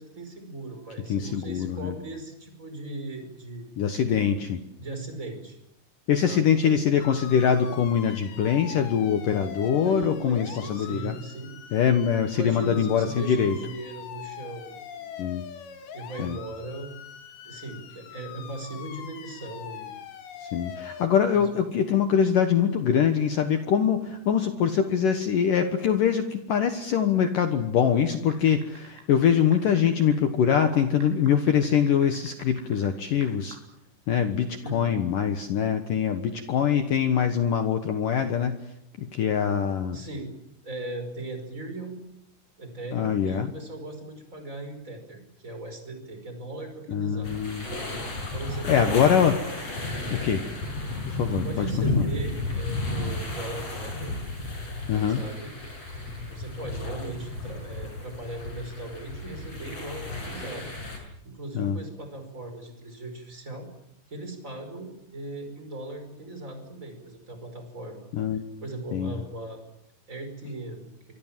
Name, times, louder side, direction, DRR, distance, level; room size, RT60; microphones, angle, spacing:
voice 1, 0.0-3.7 4.8-5.6 6.2-6.8 9.8-11.6 12.3-15.1 15.9-16.9 17.4-20.0 21.3-21.4 34.6-35.0 39.1-39.2 39.9-40.3 40.6-42.0 42.6-47.3 48.3-49.2 50.4-50.5 51.0-54.2 55.0-55.5 56.3-60.7 61.2-63.7 64.1-69.6 70.1-70.9, right 2 dB, 15° right, 6 dB, 5.1 m, -38 dB
voice 2, 1.1-1.9 3.8-4.6 6.1-11.1 11.7-13.6 15.2-15.5 16.2-16.4 20.4-33.6 34.1-38.5 39.0-40.0 42.9-43.5 46.9-47.7 48.6-49.3 50.1-50.4 51.1-51.7 52.0-52.1 54.9-55.2 61.5-61.8 68.1-68.4 68.9-69.2, left 8 dB, 75° left, 7 dB, 1.9 m, -23 dB
sound 1, 7.0-21.1, left 9 dB, 60° left, 3.4 m, -43 dB
sound 2, 28.3-30.2 30.6-32.9 33.2-33.5, right 3 dB, 70° right, 7.4 m, -47 dB
sound 3, 47.2-61.0, left 2 dB, 30° left, 6.7 m, -33 dB
26.5 x 24.0 x 7.5 m, 0.82 s
omnidirectional pair, 5.8 m